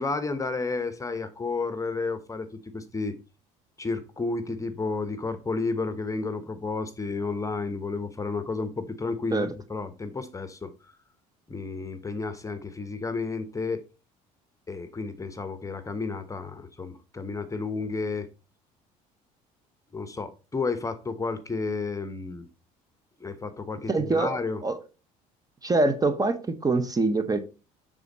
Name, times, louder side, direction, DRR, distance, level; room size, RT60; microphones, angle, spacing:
voice 1, 0.0-2.5 2.7-3.1 3.8-10.7 11.5-13.8 14.7-18.3 19.9-22.5 23.2-24.6, left 3 dB, 20° left, 0.9 m, -31 dB
voice 2, 23.9-24.8 25.6-27.4, right 3 dB, 20° right, 0.8 m, -25 dB
6.9 x 3.6 x 4.0 m
supercardioid pair, 80°, 17 cm